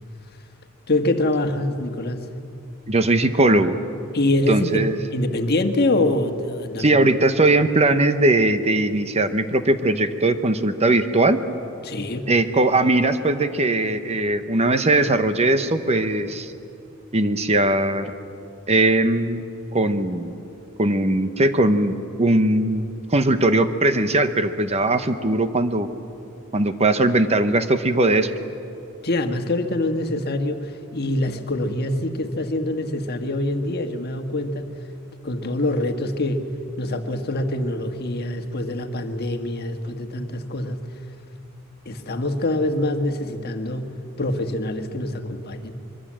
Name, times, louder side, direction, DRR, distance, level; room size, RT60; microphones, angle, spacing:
voice 1, 0.9-2.3 4.1-7.0 11.8-12.3 29.0-34.7 35.2-36.5 36.8-40.9 41.8-45.7, left 1 dB, 50° left, 6 dB, 1.5 m, -25 dB
voice 2, 2.9-3.8 4.5-5.0 6.8-11.4 12.3-16.5 17.1-18.1 18.7-19.4 19.7-20.3 20.8-25.9 26.5-28.3, right 2 dB, 30° right, 9 dB, 0.9 m, -19 dB
25.0 x 23.0 x 7.5 m, 2.7 s
head